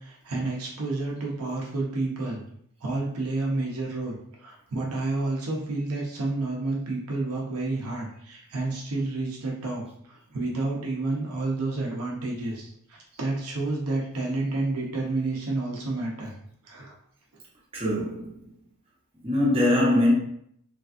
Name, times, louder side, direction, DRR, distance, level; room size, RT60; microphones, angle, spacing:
voice 1, 0.0-2.4 2.8-16.3 16.6-16.9, right 2 dB, 80° right, 0.7 m, -30 dB
voice 2, 17.7-18.5 19.2-20.1, left 1 dB, 25° right, 1.0 m, -22 dB
3.2 x 2.4 x 2.5 m
head